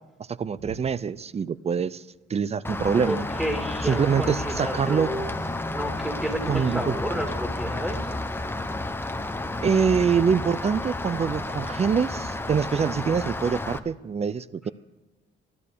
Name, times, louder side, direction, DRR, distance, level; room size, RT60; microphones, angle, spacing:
voice 1, 0.4-2.0 2.3-3.2 3.8-5.1 6.5-6.8 9.6-14.7, right 6 dB, 30° right, 19 dB, 0.5 m, -24 dB
Rain, 2.6-13.8, left 2 dB, 10° left, 0.9 m, -31 dB
voice 2, 3.1-5.4 5.7-8.2, equal, 5° right, 3 dB, 2.3 m, -31 dB
13.5 x 12.0 x 6.8 m, 1.1 s
cardioid pair, 90°, 20 cm